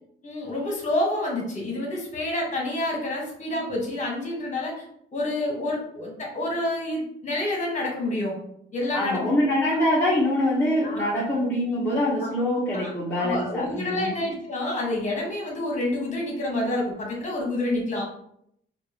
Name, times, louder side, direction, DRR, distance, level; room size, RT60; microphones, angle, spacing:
voice 1, 0.2-4.7 5.1-8.4 8.7-9.3 10.8-11.2 12.2-12.3 12.7-12.9 13.2-18.0, left 1 dB, 35° left, -1 dB, 1.4 m, -28 dB
voice 2, 8.9-14.1, left 1 dB, 10° left, -10 dB, 1.2 m, -24 dB
3.3 x 2.5 x 3.4 m, 0.72 s
cardioid pair, 90°, 20 cm